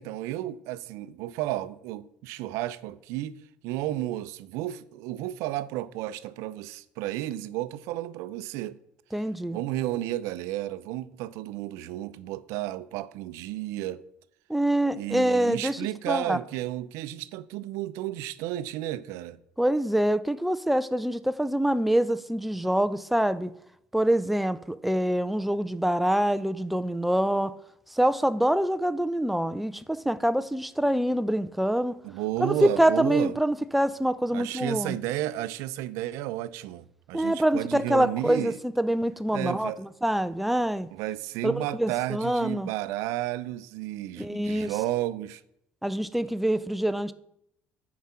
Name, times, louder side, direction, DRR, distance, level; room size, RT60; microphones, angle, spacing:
voice 1, 0.0-8.8 9.5-14.0 14.9-19.4 32.0-33.4 34.3-38.6 39.3-39.8 40.9-45.4, right 14 dB, 90° right, 0.5 m, -32 dB
voice 2, 9.1-9.6 14.5-15.8 16.1-16.4 19.6-23.5 23.9-27.5 27.9-32.0 32.4-34.9 37.1-40.9 41.4-42.7 44.2-44.7 45.8-47.1, right 1 dB, ahead, 0.3 m, -25 dB
9.5 x 4.8 x 5.6 m
cardioid pair, 170°, 5 cm